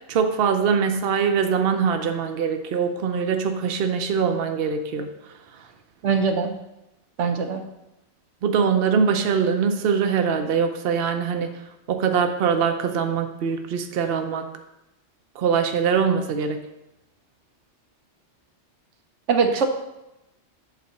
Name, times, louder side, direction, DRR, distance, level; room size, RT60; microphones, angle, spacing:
voice 1, 0.0-5.1 8.4-11.5 11.9-14.5 15.4-16.6, right 6 dB, 60° right, 6 dB, 0.9 m, -23 dB
voice 2, 6.0-6.5 7.2-7.6 19.3-19.7, right 5 dB, 85° right, 5 dB, 1.2 m, -21 dB
8.3 x 4.1 x 6.4 m, 0.92 s
omnidirectional pair, 1.2 m